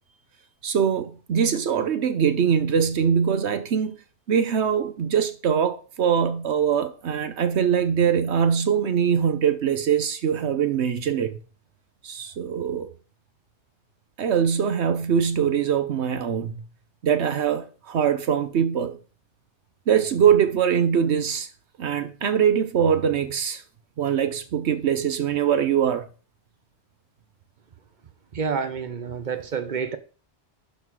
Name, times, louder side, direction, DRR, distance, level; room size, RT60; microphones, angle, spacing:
voice 1, 0.6-4.0 4.3-11.4 12.0-12.9 14.2-16.6 17.0-19.0 19.9-21.5 21.8-23.6 24.0-26.1, right 8 dB, 70° right, 1.1 m, -22 dB
voice 2, 28.3-30.0, right 6 dB, 45° right, 1.0 m, -28 dB
11.5 x 4.4 x 4.7 m
omnidirectional pair, 1.2 m